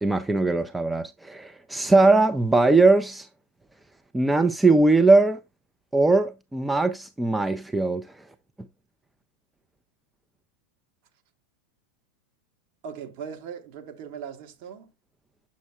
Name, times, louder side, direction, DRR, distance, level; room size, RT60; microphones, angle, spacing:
voice 1, 0.0-3.3 4.1-5.4 5.9-8.0, right 3 dB, 5° right, 0.4 m, -20 dB
voice 2, 12.8-14.9, right 7 dB, 45° right, 1.2 m, -39 dB
7.1 x 6.1 x 2.4 m
figure-of-eight pair, 90°, 0 cm